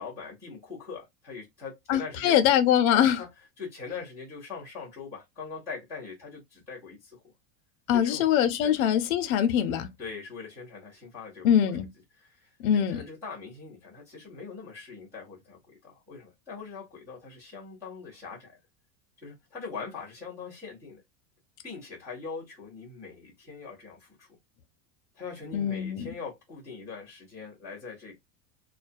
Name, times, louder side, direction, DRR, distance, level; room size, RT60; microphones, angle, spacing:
voice 1, 0.0-2.4 2.9-3.3 3.6-7.3 7.9-8.8 10.0-11.8 12.2-18.6 19.2-21.0 21.6-24.4 25.1-28.2, left 5 dB, 5° right, 0.3 m, -42 dB
voice 2, 1.9-3.2 7.9-9.9 11.4-11.9 12.6-13.0 25.5-26.1, left 10 dB, 55° left, 0.6 m, -23 dB
2.2 x 2.2 x 2.4 m
supercardioid pair, 160°, 49 cm